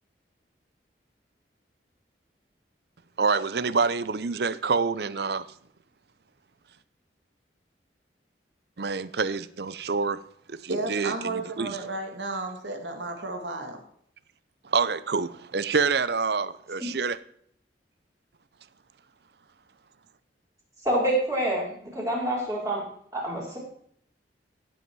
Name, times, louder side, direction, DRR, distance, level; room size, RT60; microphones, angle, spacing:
voice 1, 3.2-5.5 8.8-10.2 10.5-11.7 14.6-17.2, right 4 dB, 60° right, 0.6 m, -27 dB
voice 2, 10.7-13.8, right 2 dB, 90° right, 2.2 m, -33 dB
voice 3, 20.8-21.7 21.9-22.8 23.1-23.6, right 1 dB, 20° right, 4.8 m, -26 dB
16.5 x 8.1 x 4.7 m
head